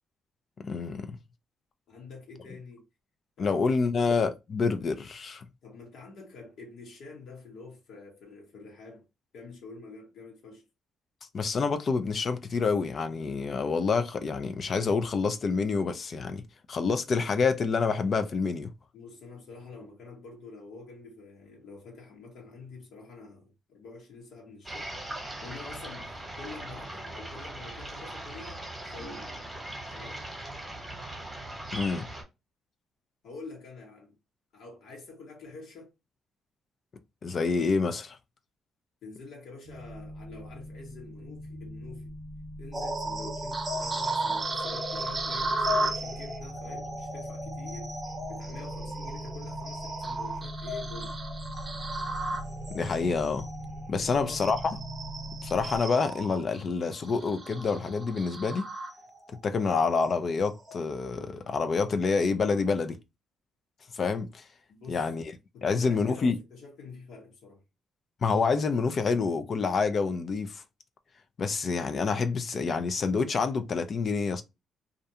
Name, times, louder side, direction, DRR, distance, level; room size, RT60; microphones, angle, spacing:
voice 1, 0.6-1.2 3.4-5.5 11.3-16.4 16.7-18.7 31.7-32.1 37.2-38.2 52.7-53.5 53.9-54.8 55.4-58.7 59.4-63.0 63.9-64.4 64.9-65.2 65.6-66.4 68.2-70.6 71.4-74.4, left 4 dB, 50° left, 0.4 m, -27 dB
voice 2, 1.9-2.9 3.4-3.6 5.6-9.1 9.3-10.6 18.9-24.9 25.4-29.3 29.9-30.2 33.2-34.2 34.5-35.9 39.0-42.1 42.6-48.0 48.3-51.2 54.0-54.4 64.7-65.1 65.5-67.6, left 3 dB, 75° left, 1.0 m, -47 dB
sound 1, 24.6-32.2, right 1 dB, 10° right, 1.0 m, -40 dB
sound 2, 39.6-55.8, equal, 85° right, 0.6 m, -41 dB
sound 3, 42.7-59.4 59.8-60.1 60.6-60.8, right 2 dB, 30° right, 0.6 m, -35 dB
2.4 x 2.2 x 2.7 m
cardioid pair, 90°, 0 cm